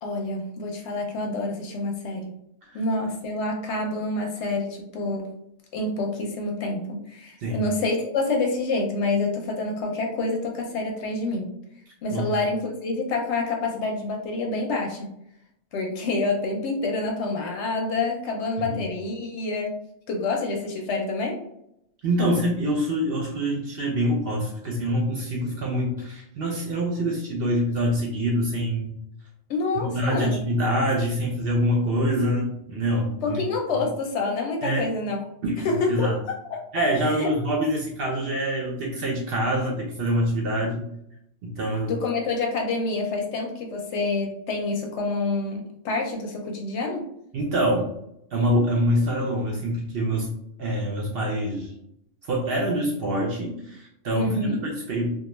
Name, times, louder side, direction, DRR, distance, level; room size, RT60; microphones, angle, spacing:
voice 1, 0.0-2.3 2.7-5.3 5.7-11.5 12.0-15.1 15.7-19.8 20.1-21.4 29.5-30.3 33.2-35.2 35.6-36.6 37.0-37.3 41.9-47.1 54.2-54.6, left 3 dB, 65° left, 1 dB, 0.8 m, -27 dB
voice 2, 22.0-28.9 29.8-33.4 34.6-34.9 35.4-36.1 36.7-40.9 41.4-41.9 47.3-47.9 48.3-50.3 50.6-51.7 52.3-55.1, equal, 60° right, -1 dB, 0.6 m, -25 dB
2.3 x 2.2 x 3.0 m, 0.77 s
omnidirectional pair, 1.3 m